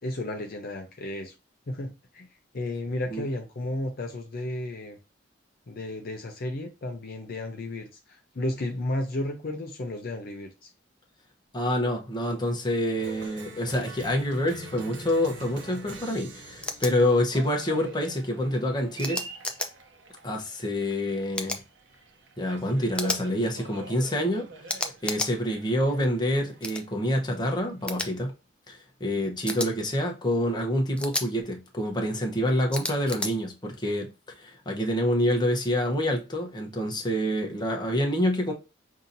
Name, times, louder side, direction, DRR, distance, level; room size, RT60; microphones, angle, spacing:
voice 1, 0.0-1.3 1.7-2.3 2.5-5.0 5.7-10.7, left 1 dB, 50° left, 0.6 m, -33 dB
voice 2, 11.5-19.2 20.2-21.6 22.4-24.5 25.0-28.3 28.7-34.1 34.4-38.5, left 1 dB, 25° left, 0.8 m, -27 dB
Cheering, 13.0-28.2, right 3 dB, 70° right, 0.8 m, -44 dB
sound 1, 16.6-16.9 19.0-19.7 21.3-21.6 23.0-23.2 24.7-25.3 26.6-26.8 27.9-28.1 29.5-29.7 31.0-31.3 32.7-33.3, left 2 dB, 5° left, 0.5 m, -31 dB
5.5 x 2.8 x 2.6 m
head